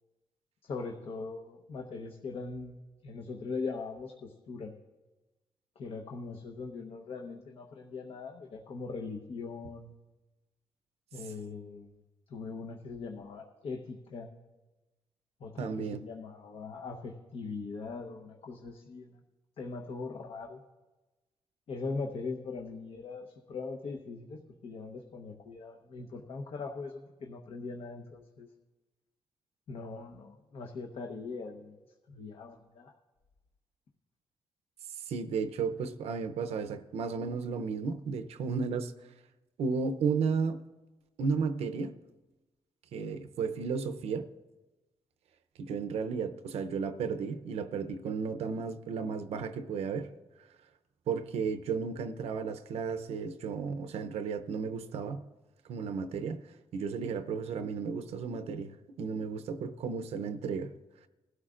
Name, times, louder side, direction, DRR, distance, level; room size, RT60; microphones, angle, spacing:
voice 1, 0.6-4.7 5.8-10.0 11.1-11.9 12.3-14.3 15.4-19.2 19.6-20.6 21.7-28.5 29.7-31.8 32.1-32.9, left 4 dB, 65° left, 1.0 m, -41 dB
voice 2, 15.6-16.0 35.1-38.9 39.6-40.6 41.2-41.9 42.9-44.3 45.6-50.1 51.1-55.2 55.7-56.4 56.7-58.7 59.0-60.7, right 5 dB, 85° right, 0.7 m, -33 dB
20.5 x 12.5 x 2.5 m
cardioid pair, 105°, 10 cm